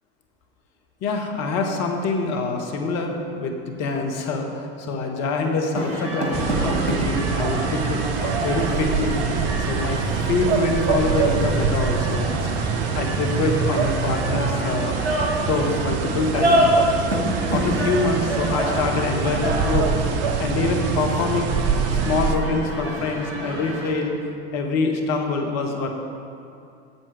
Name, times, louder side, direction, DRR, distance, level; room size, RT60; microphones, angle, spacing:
voice 1, 1.0-9.2 9.6-10.0 10.2-15.1 15.5-16.9 17.2-19.9 20.4-21.5 21.9-24.2 24.5-25.9, left 3 dB, 50° left, 3 dB, 1.3 m, -25 dB
sound 1, 5.8-23.9, right 1 dB, 85° right, 1.6 m, -28 dB
sound 2, 6.3-22.4, right 5 dB, 45° right, 0.8 m, -25 dB
8.2 x 7.2 x 4.9 m, 2.5 s
hypercardioid pair, 75°, 33 cm